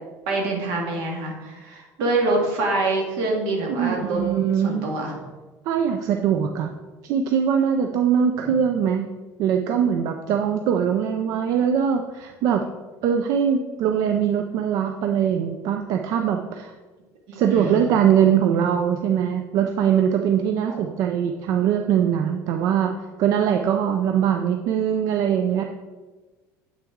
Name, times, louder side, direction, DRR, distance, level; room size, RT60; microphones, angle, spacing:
voice 1, 0.3-4.2 4.6-5.1 8.4-8.6 10.7-10.8 17.3-17.9, right 2 dB, 70° right, 0 dB, 1.9 m, -25 dB
voice 2, 3.8-4.9 5.7-6.7 7.0-9.1 9.4-12.7 13.0-16.7 17.3-25.6, right 8 dB, 50° right, 5 dB, 0.4 m, -22 dB
7.9 x 6.1 x 3.6 m, 1.2 s
cardioid pair, 180°, 7 cm